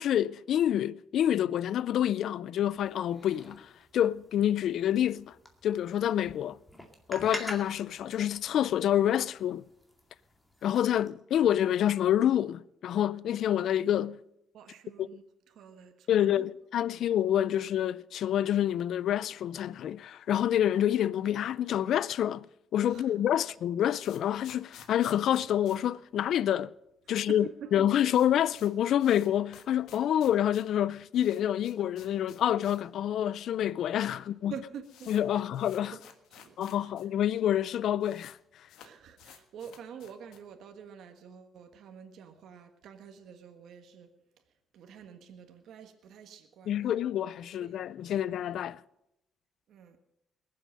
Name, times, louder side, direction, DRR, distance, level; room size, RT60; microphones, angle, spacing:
voice 1, 0.0-5.3 5.6-6.6 7.1-9.6 10.6-14.2 15.0-15.1 16.1-22.5 22.7-26.7 27.1-27.4 27.7-34.5 35.1-35.9 36.6-38.4 46.7-48.8, left 10 dB, 70° left, 0.4 m, -27 dB
sound 1, 2.6-11.1, left 1 dB, 10° left, 2.2 m, -47 dB
voice 2, 14.5-16.5 16.9-17.1 22.8-23.4 27.1-27.7 34.1-34.2 34.5-35.5 36.3-36.9 38.8-44.1 44.7-47.0 47.4-48.1 49.7-50.0, right 7 dB, 70° right, 1.5 m, -48 dB
sound 2, 23.5-26.8 27.0-27.1 27.4-27.5 27.8-32.9 33.2-33.3 34.0-34.1 34.4-37.1 37.3-37.4 37.6-38.4 38.7-40.6, left 8 dB, 85° left, 1.5 m, -55 dB
21.0 x 7.7 x 6.4 m
cardioid pair, 115°, 0 cm